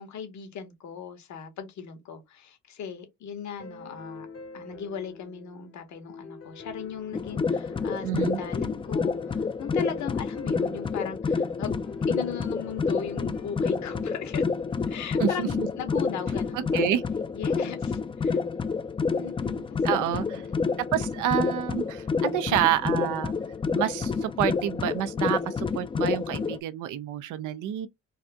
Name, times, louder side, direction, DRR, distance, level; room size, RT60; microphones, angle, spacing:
voice 1, 0.0-4.3 4.5-14.5 14.9-16.8 17.3-18.4 19.1-20.7, left 7 dB, 70° left, 1.2 m, -38 dB
sound 1, 3.6-15.6, left 4 dB, 55° left, 1.0 m, -46 dB
sound 2, 7.1-26.6, left 5 dB, 20° left, 0.3 m, -28 dB
voice 2, 8.0-8.4 15.2-15.7 16.5-17.0 19.8-20.4 20.9-23.3 23.7-27.9, right 11 dB, 85° right, 0.6 m, -28 dB
4.2 x 2.5 x 2.3 m
cardioid pair, 90°, 30 cm